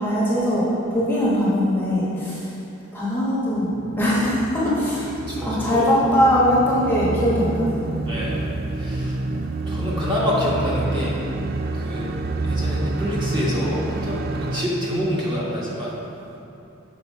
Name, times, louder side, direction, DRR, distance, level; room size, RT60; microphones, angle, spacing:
voice 1, 0.0-2.5 2.9-5.2 5.4-7.9, equal, 10° left, -8 dB, 1.1 m, -21 dB
sound 1, 3.6-14.6, right 2 dB, 45° right, 0.3 m, -28 dB
voice 2, 5.3-5.9 8.1-8.5 8.7-9.2 9.7-11.2 11.7-12.1 12.4-15.9, equal, 25° right, -7 dB, 1.3 m, -27 dB
7.0 x 4.2 x 5.4 m, 2.8 s
head